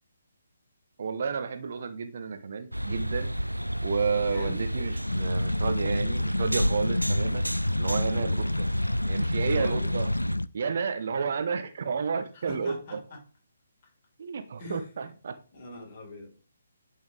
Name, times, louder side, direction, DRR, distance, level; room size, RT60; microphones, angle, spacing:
voice 1, 1.0-3.3 3.8-8.7 9.1-10.1 10.5-12.8 14.2-15.4, right 5 dB, 50° right, 9 dB, 0.9 m, -31 dB
sound 1, 2.7-10.4, equal, 90° right, 0.3 m, -31 dB
voice 2, 4.2-4.6 8.1-8.5 9.5-9.9 12.3-13.2 14.6-14.9 15.5-16.3, left 2 dB, 35° left, 0 dB, 3.9 m, -43 dB
sound 2, 5.1-10.5, left 1 dB, 80° left, 0.3 m, -29 dB
10.5 x 5.7 x 3.3 m, 0.38 s
figure-of-eight pair, 140°, 0 cm